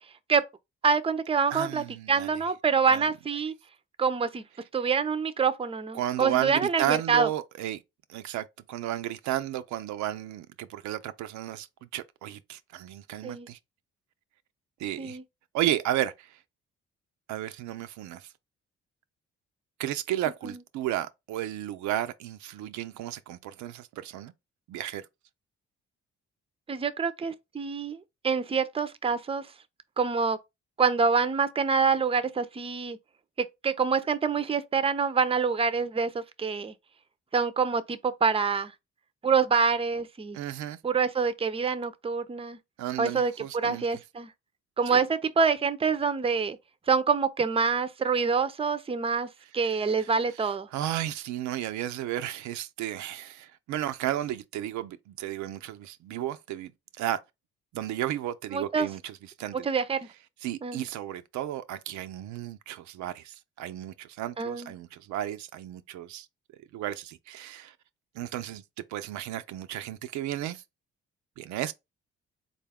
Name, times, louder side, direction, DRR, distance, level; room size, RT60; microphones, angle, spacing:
voice 1, 0.8-3.5 4.0-4.4 4.7-7.3 13.2-13.5 15.0-15.2 20.4-20.5 26.7-28.0 28.2-29.4 30.0-30.4 30.8-33.0 33.4-36.7 37.3-38.7 39.2-40.4 40.8-42.6 43.0-44.3 44.8-46.6 46.9-49.3 49.5-50.7 58.5-58.9 59.6-60.0 60.6-60.8 64.4-64.7, right 5 dB, 20° right, 0.5 m, -26 dB
voice 2, 1.5-2.3 2.9-3.1 5.9-7.8 8.1-11.7 11.9-13.6 14.8-15.2 15.5-16.4 17.3-18.3 19.8-24.3 24.7-25.1 40.3-40.8 42.8-43.9 44.9-45.0 49.6-49.7 50.0-50.1 50.4-56.7 57.0-57.2 57.7-59.7 60.4-66.3 66.7-67.7 68.2-68.6 68.9-70.6 71.4-71.7, right 12 dB, 75° right, 0.5 m, -33 dB
3.8 x 2.3 x 3.4 m
supercardioid pair, 60°, 29 cm